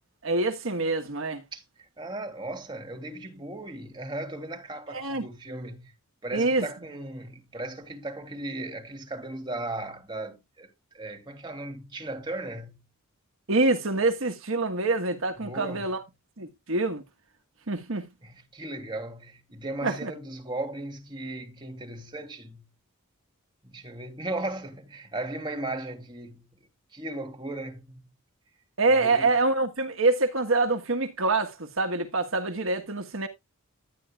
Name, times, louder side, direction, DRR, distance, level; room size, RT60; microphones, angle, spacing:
voice 1, 0.2-1.4 4.9-5.3 6.3-6.7 13.5-16.0 16.4-17.0 17.7-18.1 19.8-20.1 28.8-33.3, right 3 dB, 65° right, 1.5 m, -25 dB
voice 2, 1.5-5.9 6.2-12.8 15.4-16.0 18.2-22.7 23.6-26.6 26.9-28.1 28.9-29.3, right 2 dB, 20° right, 3.1 m, -37 dB
12.0 x 10.0 x 2.4 m
head